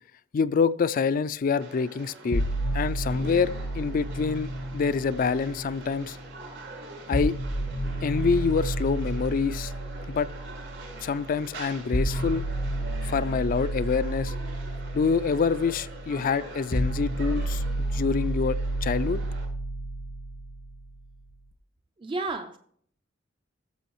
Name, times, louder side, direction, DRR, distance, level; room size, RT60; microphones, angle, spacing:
voice 1, 0.3-2.4 2.7-6.2 7.1-7.4 8.0-9.7 10.1-10.3 11.0-12.4 13.0-14.3 14.9-17.6 17.9-19.2, left 5 dB, 45° left, 0.3 m, -26 dB
sound 1, 1.6-19.4, right 2 dB, 75° right, 4.2 m, -44 dB
sound 2, 2.3-6.3 7.1-21.1, right 1 dB, 75° left, 1.2 m, -31 dB
voice 2, 22.0-22.6, right 3 dB, 25° right, 0.4 m, -31 dB
14.0 x 7.0 x 3.0 m
head